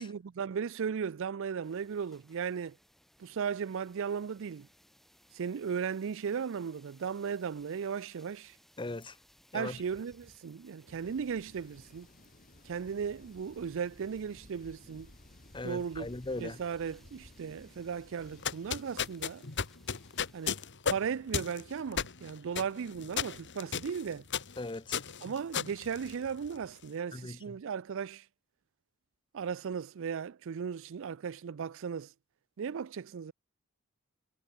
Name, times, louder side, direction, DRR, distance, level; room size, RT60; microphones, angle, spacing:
voice 1, 0.0-2.8 3.2-4.7 5.3-8.6 9.5-12.1 12.6-15.1 15.6-16.1 16.4-19.4 20.3-20.5 20.9-24.2 25.2-28.2 29.3-32.1 32.6-33.3, right 6 dB, 65° right, 0.4 m, -36 dB
sound 1, 1.6-20.7, equal, ahead, 5.5 m, -64 dB
voice 2, 8.8-9.1 9.5-9.7 15.5-16.6 24.6-25.0 27.1-27.4, left 2 dB, 25° left, 0.9 m, -38 dB
sound 2, 10.9-18.5, left 1 dB, 40° left, 2.6 m, -56 dB
sound 3, 18.3-26.6, left 7 dB, 55° left, 1.7 m, -35 dB
head